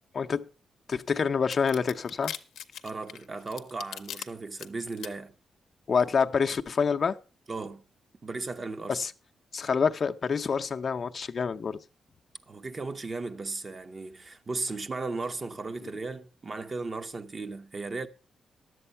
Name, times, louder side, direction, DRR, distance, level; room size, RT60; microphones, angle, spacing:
voice 1, 0.9-2.3 5.9-7.1 8.9-9.1 9.5-11.8, left 5 dB, 50° left, 0.6 m, -27 dB
sound 1, 1.5-4.2 4.6-5.1, left 9 dB, 85° left, 0.6 m, -39 dB
voice 2, 2.8-5.3 7.5-7.8 8.2-9.0 12.5-18.1, right 3 dB, 40° right, 0.9 m, -36 dB
10.5 x 7.8 x 5.5 m
cardioid pair, 75°, 0 cm